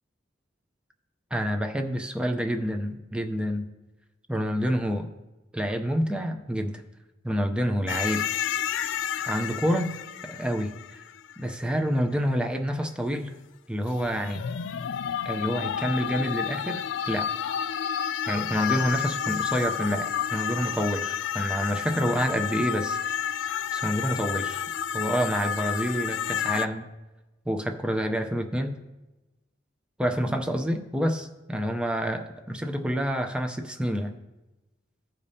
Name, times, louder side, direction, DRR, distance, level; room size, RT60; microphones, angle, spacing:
voice 1, 1.3-3.7 4.3-5.1 5.5-6.8 7.2-8.2 9.2-9.9 10.2-10.7 11.4-13.3 13.7-14.4 15.3-17.3 18.3-23.3 23.7-24.6 24.9-26.9 27.5-28.8 30.0-34.1, equal, 5° right, 4 dB, 0.5 m, -28 dB
sound 1, 7.9-11.5 13.9-26.7, left 8 dB, 85° left, 0.4 m, -30 dB
15.0 x 5.2 x 2.8 m, 1.1 s
head